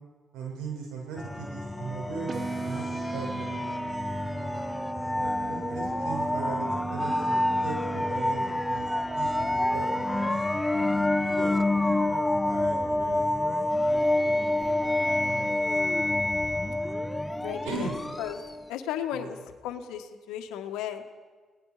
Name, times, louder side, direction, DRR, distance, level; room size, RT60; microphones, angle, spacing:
voice 1, 0.3-3.6 4.4-4.7 5.1-8.9 9.1-10.4 11.2-13.6 13.9-14.5 15.2-15.6 17.6-17.9 19.1-19.3, right 4 dB, 85° right, 0 dB, 7.6 m, -39 dB
sound 1, 1.2-18.7, left 1 dB, 10° left, 1.1 m, -28 dB
sound 2, 2.3-10.3, right 4 dB, 45° right, 1.0 m, -38 dB
voice 2, 17.4-17.9 18.2-18.4 18.7-21.2, left 10 dB, 85° left, 7 dB, 1.8 m, -35 dB
29.5 x 19.0 x 5.2 m, 1.4 s
supercardioid pair, 65°, 0 cm